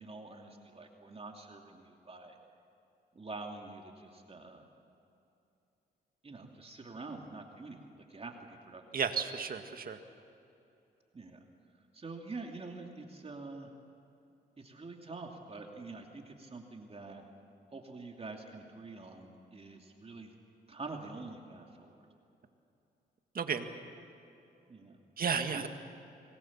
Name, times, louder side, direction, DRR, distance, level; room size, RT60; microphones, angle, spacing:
voice 1, 0.0-2.4 3.1-4.7 6.2-8.8 11.1-11.4 11.9-13.7 14.6-17.2 17.7-20.3 20.7-22.0 24.7-25.0 25.5-25.7, right 3 dB, 35° right, 2 dB, 2.7 m, -46 dB
voice 2, 8.9-10.0 23.3-23.7 25.2-25.7, right 6 dB, 55° right, 7 dB, 1.9 m, -33 dB
25.5 x 20.0 x 7.4 m, 2.8 s
cardioid pair, 70°, 18 cm